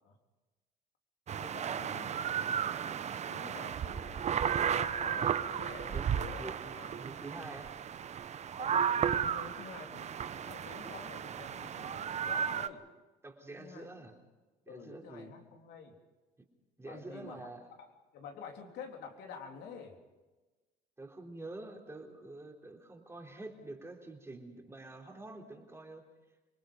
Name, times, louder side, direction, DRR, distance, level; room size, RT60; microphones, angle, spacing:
sound 1, 1.3-12.7, right 8 dB, 40° right, 0.9 m, -34 dB
voice 1, 1.4-2.5 3.3-4.4 4.8-7.0 8.6-12.8 13.5-14.1 14.7-16.0 16.8-17.9 18.1-20.0, left 5 dB, 80° left, 2 dB, 3.5 m, -49 dB
voice 2, 6.4-7.8 13.2-14.1 14.7-15.3 16.4-16.5 16.8-17.6 21.0-26.0, right 2 dB, 15° right, 1 dB, 3.7 m, -47 dB
28.0 x 20.0 x 5.3 m, 1.2 s
cardioid pair, 110°, 17 cm